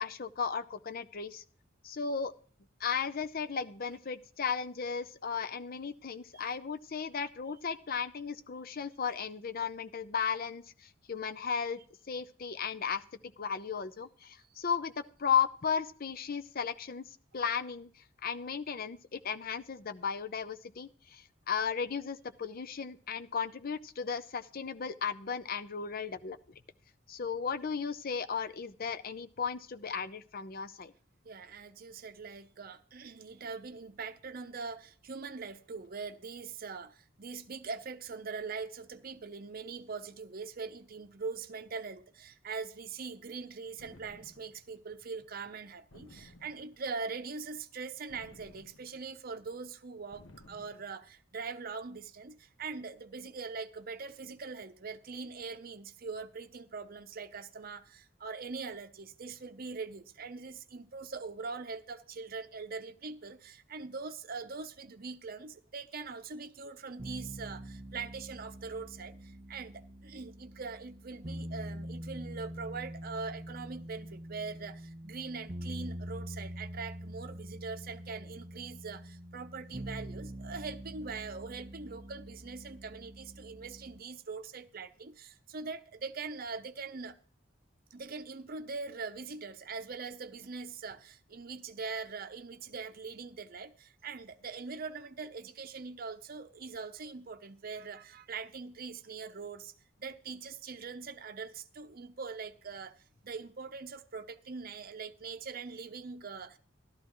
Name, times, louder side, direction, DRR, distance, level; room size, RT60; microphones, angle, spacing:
voice 1, 0.0-1.4 1.8-2.3 2.8-11.8 12.1-13.0 13.4-17.0 17.3-17.9 18.2-26.6 27.1-30.9, left 6 dB, 50° left, 0.6 m, -35 dB
voice 2, 31.2-87.2 87.9-99.7 100.0-103.0 103.2-106.6, right 4 dB, 50° right, 0.7 m, -42 dB
sound 1, 43.8-44.7 45.9-46.9 48.1-49.1 50.1-51.0, left 1 dB, 75° left, 1.2 m, -56 dB
sound 2, 67.0-84.0, equal, 30° right, 1.7 m, -45 dB
14.0 x 12.0 x 3.1 m
head